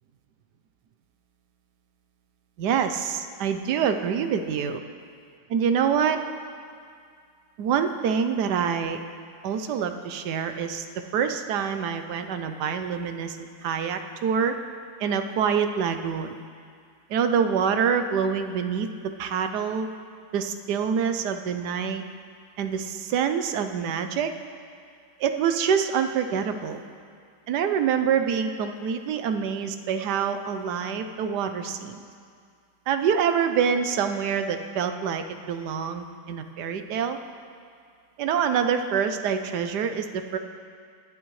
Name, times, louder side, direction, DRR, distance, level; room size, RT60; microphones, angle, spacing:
voice 1, 2.6-4.8 5.5-6.2 7.6-9.0 9.4-10.8 11.1-14.6 15.0-16.4 17.1-18.9 19.2-19.9 20.3-22.0 22.6-24.3 25.2-26.8 27.5-32.0 32.9-37.2 38.2-40.4, right 7 dB, 80° right, 8 dB, 1.3 m, -26 dB
20.0 x 11.0 x 3.2 m, 2.2 s
omnidirectional pair, 1.8 m